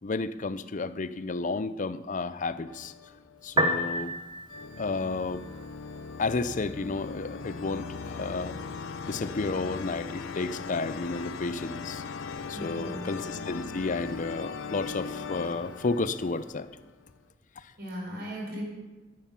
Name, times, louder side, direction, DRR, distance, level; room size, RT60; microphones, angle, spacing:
voice 1, 0.0-2.9 3.4-4.1 4.8-5.4 6.2-8.6 9.1-12.0 12.5-16.7, left 3 dB, 40° left, 14 dB, 0.5 m, -32 dB
sound 1, 2.7-3.9 4.5-17.1, left 5 dB, 85° left, 0.8 m, -39 dB
Piano, 3.4-16.4, equal, 25° right, 0.9 m, -38 dB
voice 2, 12.5-13.1 17.8-18.6, equal, 55° right, -2 dB, 5.0 m, -38 dB
11.5 x 11.0 x 5.8 m, 1.2 s
head